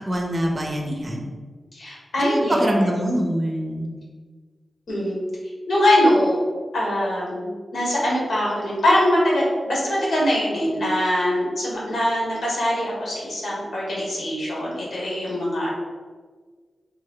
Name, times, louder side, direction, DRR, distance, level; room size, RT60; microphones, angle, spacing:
voice 1, 0.1-1.3 2.2-3.9, equal, 25° right, 1 dB, 0.6 m, -24 dB
voice 2, 1.7-2.9 4.9-5.2 5.7-6.4 6.7-15.7, left 1 dB, 90° left, -5 dB, 1.5 m, -22 dB
3.4 x 3.3 x 3.7 m, 1.5 s
wide cardioid pair, 160°, 0 cm